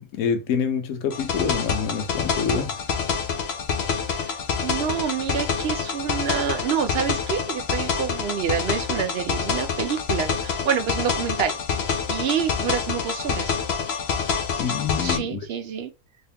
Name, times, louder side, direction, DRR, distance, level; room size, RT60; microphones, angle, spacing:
voice 1, 0.0-2.8 14.6-15.4, left 6 dB, 75° left, 1.1 m, -26 dB
sound 1, 1.1-15.2, left 6 dB, 55° left, 0.8 m, -27 dB
voice 2, 4.6-13.5 15.0-15.9, right 7 dB, 65° right, 0.6 m, -27 dB
3.4 x 3.1 x 2.8 m
omnidirectional pair, 1.5 m